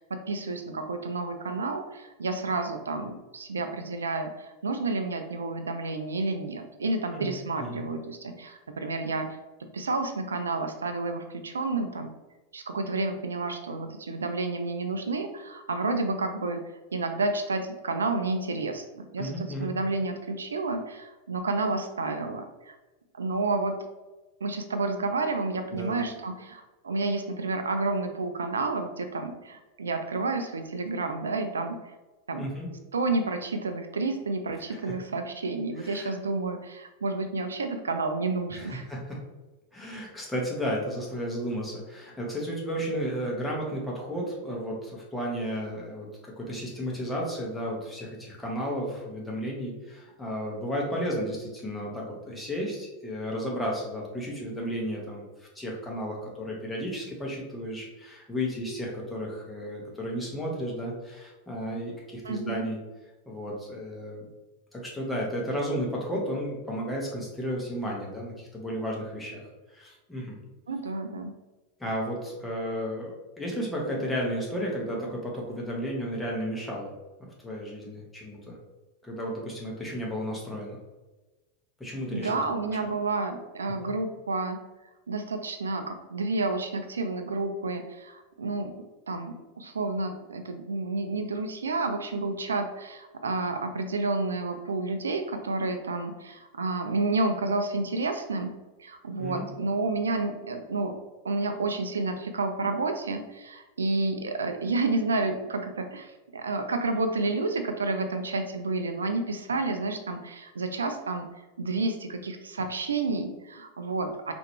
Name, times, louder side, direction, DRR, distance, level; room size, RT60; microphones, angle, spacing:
voice 1, 0.0-9.4 9.7-12.1 12.5-16.6 16.9-22.7 23.1-23.8 24.4-31.8 32.3-32.5 32.9-38.8 62.2-62.7 70.7-71.3 82.1-84.6 85.1-88.8 89.1-98.5 98.8-101.0 101.2-111.3 111.6-114.3, right 3 dB, 75° right, 7 dB, 0.4 m, -30 dB
voice 2, 7.1-7.8 19.2-19.7 25.7-26.2 32.4-32.7 34.7-34.8 35.8-36.2 38.5-39.2 39.7-62.8 63.3-64.3 64.7-69.4 69.7-70.4 71.8-76.9 77.2-78.6 79.0-80.8 81.8-82.4 99.2-99.4, equal, 5° left, -3 dB, 1.4 m, -33 dB
4.8 x 3.0 x 3.2 m, 1.1 s
figure-of-eight pair, 90°, 0 cm